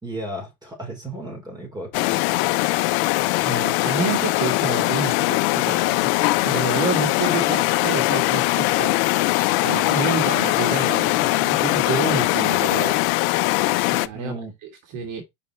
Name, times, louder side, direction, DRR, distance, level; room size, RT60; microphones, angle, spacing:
voice 1, 0.0-2.5 14.1-14.5, right 1 dB, 10° right, 4.2 m, -34 dB
sound 1, 1.9-14.1, left 21 dB, 55° left, 0.5 m, -21 dB
voice 2, 3.5-13.0 13.9-15.2, right 5 dB, 55° right, 2.0 m, -29 dB
5.5 x 5.5 x 4.3 m
supercardioid pair, 130°, 37 cm